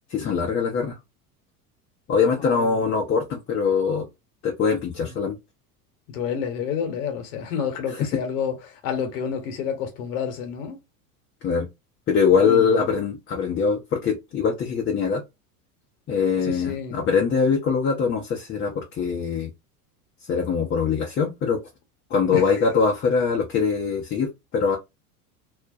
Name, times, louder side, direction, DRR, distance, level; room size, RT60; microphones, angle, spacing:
voice 1, 0.1-0.9 2.1-4.1 4.4-5.4 7.9-8.1 11.4-11.7 12.1-15.2 16.1-19.5 20.3-21.6 22.1-24.8, left 5 dB, 25° left, 0.5 m, -22 dB
voice 2, 2.4-2.9 5.0-5.1 6.1-10.8 12.3-12.9 16.4-17.0 22.3-22.4, left 7 dB, 70° left, 0.9 m, -29 dB
2.4 x 2.0 x 2.6 m
hypercardioid pair, 85°, 47 cm